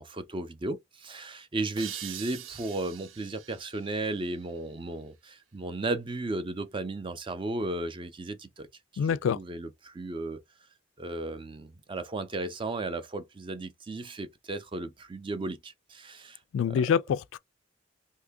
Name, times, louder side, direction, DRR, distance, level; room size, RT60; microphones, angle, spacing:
voice 1, 0.0-8.7 8.9-10.4 11.0-16.4 16.7-16.9, right 2 dB, 25° right, 0.4 m, -35 dB
sound 1, 1.8-5.2, right 10 dB, 80° right, 0.4 m, -45 dB
voice 2, 9.0-9.4 16.5-17.4, left 7 dB, 85° left, 0.3 m, -26 dB
2.8 x 2.6 x 3.4 m
head